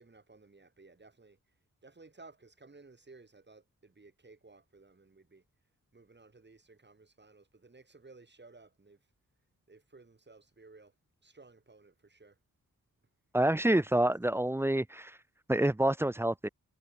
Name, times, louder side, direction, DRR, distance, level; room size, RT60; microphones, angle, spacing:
voice 1, 0.0-1.4 1.8-5.4 5.9-9.1 9.7-10.9 11.2-12.4, right 3 dB, 30° right, 2.6 m, -57 dB
voice 2, 13.3-15.1 15.5-16.5, right 1 dB, 5° right, 0.4 m, -27 dB
wide cardioid pair, 105°, 34 cm